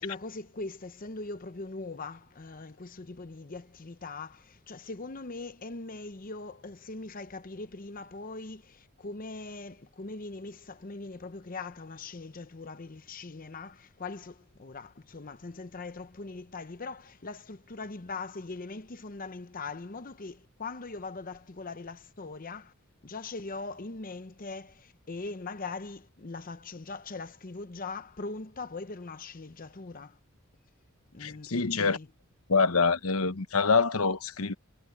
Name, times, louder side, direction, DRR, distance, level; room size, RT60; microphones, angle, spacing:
voice 1, 0.0-22.7 23.0-30.2 31.1-32.1, left 3 dB, 40° left, 0.8 m, -41 dB
voice 2, 31.2-32.0 32.5-34.5, left 4 dB, 90° left, 1.1 m, -25 dB
head